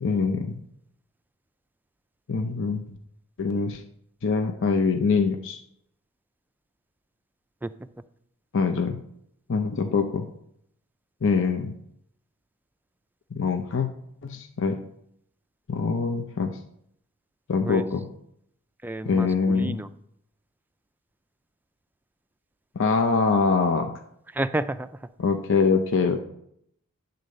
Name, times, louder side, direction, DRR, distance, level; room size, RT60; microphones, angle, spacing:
voice 1, 0.0-0.6 2.3-2.8 3.4-3.8 4.2-5.6 8.5-9.0 9.5-10.3 11.2-11.7 13.3-13.9 14.2-14.8 15.7-16.6 17.5-18.0 19.1-19.8 22.7-23.9 25.2-26.2, left 4 dB, 60° left, 6 dB, 0.6 m, -24 dB
voice 2, 7.6-8.0 17.6-17.9 18.8-19.9 24.3-25.1 26.0-26.2, right 2 dB, 10° right, 11 dB, 0.3 m, -31 dB
10.0 x 4.0 x 6.5 m, 0.71 s
head